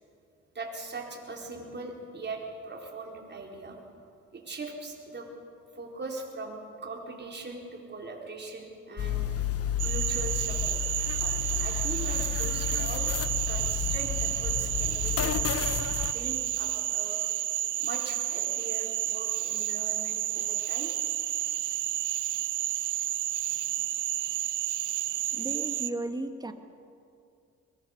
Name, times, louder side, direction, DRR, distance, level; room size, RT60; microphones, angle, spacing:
voice 1, 0.5-3.8 4.3-5.3 5.7-9.3 9.8-11.1 11.6-13.1 13.5-15.4 16.1-17.2 17.8-20.9, right 3 dB, 35° right, 0 dB, 4.4 m, -40 dB
sound 1, 9.0-16.1, left 10 dB, 50° left, 1.1 m, -31 dB
Cricket / Frog, 9.8-25.9, right 14 dB, 80° right, 0.9 m, -31 dB
voice 2, 25.3-26.5, right 2 dB, 15° right, 7 dB, 1.7 m, -35 dB
23.0 x 20.0 x 6.7 m, 2.5 s
cardioid pair, 90°, 30 cm